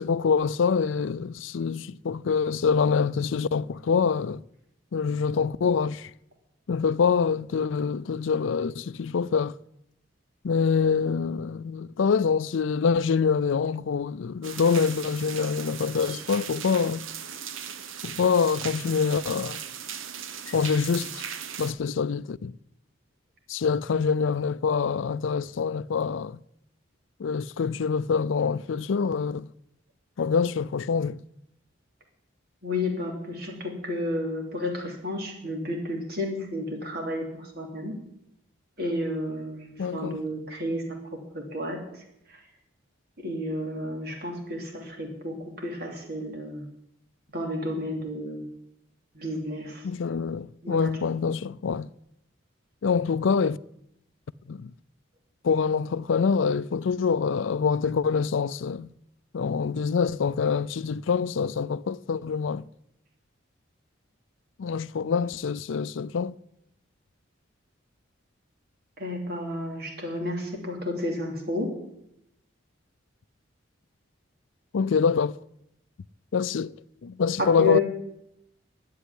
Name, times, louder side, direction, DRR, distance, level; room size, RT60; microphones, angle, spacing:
voice 1, 0.0-4.4 4.9-6.1 6.7-9.6 10.4-17.1 18.0-19.6 20.5-21.2 21.6-22.5 23.5-26.4 27.2-29.5 30.2-31.2 39.8-40.2 49.8-51.9 52.8-53.6 54.5-54.7 55.4-58.9 59.3-62.7 64.6-66.3 74.7-75.4 76.3-76.7 77.0-77.8, left 5 dB, 75° left, 0.4 m, -25 dB
sound 1, 14.4-21.7, right 8 dB, 85° right, 0.9 m, -38 dB
voice 2, 32.6-38.0 38.8-40.8 41.1-41.8 42.3-42.4 43.2-46.7 47.3-48.4 49.1-49.9 50.6-50.9 69.0-71.7 77.4-77.8, left 1 dB, 50° right, 3.0 m, -31 dB
11.5 x 8.5 x 9.8 m
head